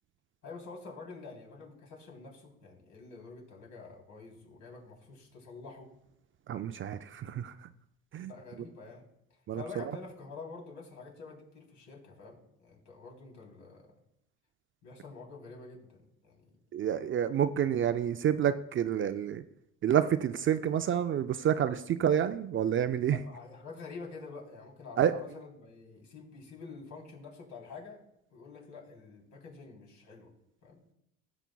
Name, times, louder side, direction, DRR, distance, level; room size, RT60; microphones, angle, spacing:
voice 1, 0.4-5.9 8.2-14.0 14.8-16.6 23.1-28.0 28.3-30.3 30.6-30.8, left 4 dB, 60° left, -1 dB, 3.4 m, -48 dB
voice 2, 6.5-7.5 8.1-8.3 9.5-9.6 16.7-19.4 19.8-23.2 25.0-25.2, right 9 dB, 40° right, 11 dB, 0.4 m, -28 dB
16.0 x 6.9 x 2.3 m, 0.79 s
cardioid pair, 100°, 34 cm